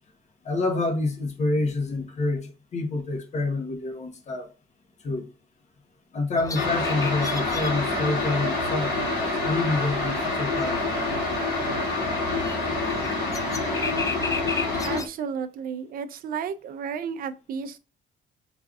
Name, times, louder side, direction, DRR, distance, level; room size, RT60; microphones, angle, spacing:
voice 1, 0.4-4.5 5.0-5.3 6.1-11.0, left 2 dB, 40° left, 1.2 m, -28 dB
sound 1, 6.4-15.1, left 4 dB, 20° left, 0.5 m, -35 dB
sound 2, 6.5-15.0, left 2 dB, 90° left, 2.1 m, -27 dB
voice 2, 14.8-17.8, right 7 dB, 60° right, 0.6 m, -32 dB
3.8 x 3.2 x 2.4 m
cardioid pair, 110°, 17 cm